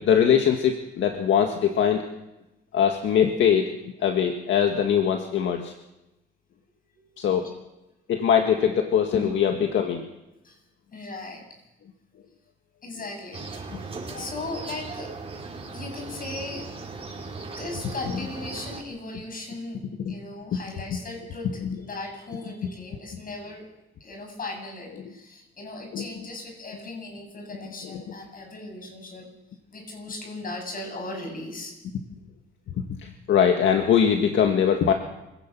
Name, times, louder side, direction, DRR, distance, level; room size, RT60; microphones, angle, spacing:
voice 1, 0.0-2.1 2.7-3.7 4.0-5.7 7.2-7.5 8.1-10.1 13.7-13.8 18.0-18.2 20.0-20.1 20.5-20.6 20.9-21.0 21.4-21.8 22.5-22.7 24.9-25.0 25.9-26.1 27.8-28.0 32.8-34.9, left 8 dB, 70° left, 4 dB, 1.9 m, -22 dB
voice 2, 7.1-7.4 9.1-9.3 10.4-10.6 10.9-11.4 12.8-15.2 15.7-16.7 17.2-17.3 17.6-23.7 24.0-29.3 29.7-31.7, left 2 dB, 45° left, 3 dB, 7.4 m, -37 dB
sound 1, 13.3-18.8, right 4 dB, 30° right, 5.2 m, -38 dB
26.0 x 17.0 x 6.1 m, 0.94 s
cardioid pair, 90°, 20 cm